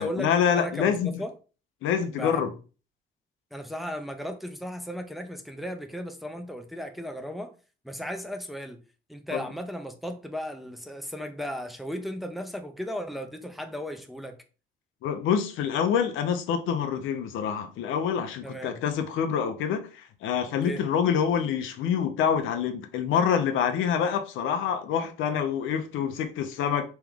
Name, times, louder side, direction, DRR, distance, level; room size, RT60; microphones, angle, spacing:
voice 1, 0.0-1.2 1.8-2.5 9.3-9.4 15.0-26.9, left 7 dB, 90° left, 0.6 m, -26 dB
voice 2, 0.5-1.3 2.1-2.5 3.5-7.5 7.8-8.8 9.1-14.4 18.4-18.8 20.7-20.8, equal, ahead, 0.6 m, -35 dB
3.5 x 3.1 x 3.4 m
cardioid pair, 90°, 20 cm